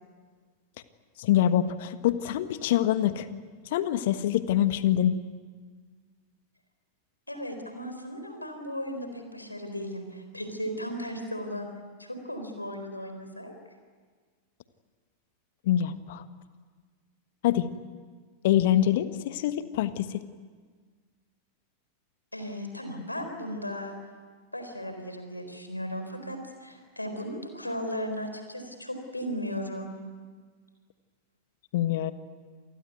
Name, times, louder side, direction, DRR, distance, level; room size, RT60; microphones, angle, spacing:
voice 1, 1.2-3.3 3.7-5.1 15.6-16.2 17.4-17.7 18.4-20.2 31.7-32.1, left 11 dB, 55° left, 12 dB, 1.4 m, -25 dB
voice 2, 7.3-11.7 12.0-13.5 22.3-23.9 24.5-30.0, equal, 85° left, 6 dB, 4.2 m, -36 dB
27.5 x 19.5 x 9.3 m, 1.5 s
figure-of-eight pair, 90°, 0 cm